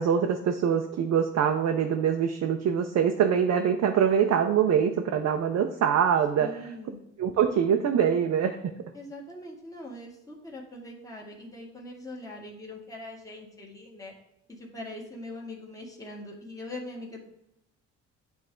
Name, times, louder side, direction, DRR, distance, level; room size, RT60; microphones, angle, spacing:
voice 1, 0.0-6.5 7.2-8.7, right 8 dB, 60° right, 4 dB, 0.6 m, -24 dB
voice 2, 6.4-7.0 8.9-14.1 14.5-17.2, left 1 dB, 10° left, -2 dB, 1.6 m, -42 dB
8.8 x 3.5 x 3.7 m, 0.83 s
cardioid pair, 90°, 30 cm